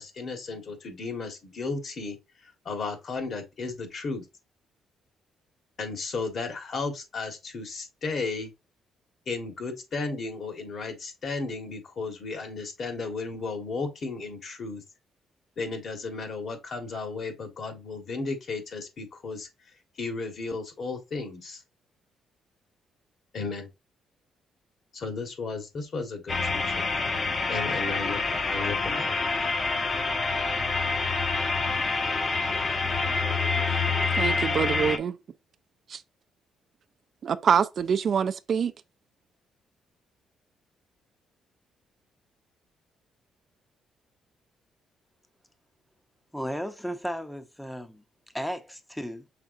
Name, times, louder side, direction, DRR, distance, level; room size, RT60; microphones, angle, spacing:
voice 1, 0.0-2.2 2.4-4.2 5.8-8.5 9.3-14.8 15.6-19.5 20.0-21.6 23.3-23.7 24.9-26.9 27.5-29.1, left 4 dB, 55° left, 1.5 m, -34 dB
sound 1, 26.3-35.0, left 3 dB, 35° left, 0.9 m, -27 dB
voice 2, 34.2-35.2 35.9-36.0 37.2-38.7, right 7 dB, 55° right, 0.4 m, -25 dB
voice 3, 46.3-48.0 48.3-49.3, equal, 5° left, 0.7 m, -34 dB
5.9 x 3.4 x 2.6 m
cardioid pair, 90°, 0 cm